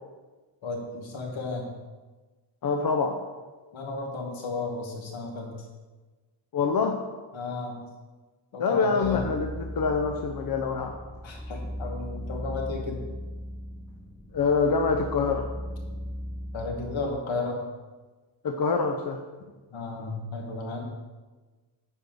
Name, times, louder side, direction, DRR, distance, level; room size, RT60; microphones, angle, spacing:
voice 1, 0.6-1.7 3.7-5.6 7.3-7.8 8.5-9.3 11.2-13.0 16.5-17.7 19.7-20.8, left 3 dB, 75° left, 0 dB, 2.2 m, -33 dB
voice 2, 2.6-3.2 6.5-7.0 8.6-11.0 14.3-15.5 18.4-19.2, left 5 dB, 50° left, 4 dB, 0.7 m, -25 dB
sound 1, 9.0-17.1, equal, 5° right, 0.6 m, -37 dB
9.9 x 4.7 x 6.7 m, 1.3 s
wide cardioid pair, 175°, 46 cm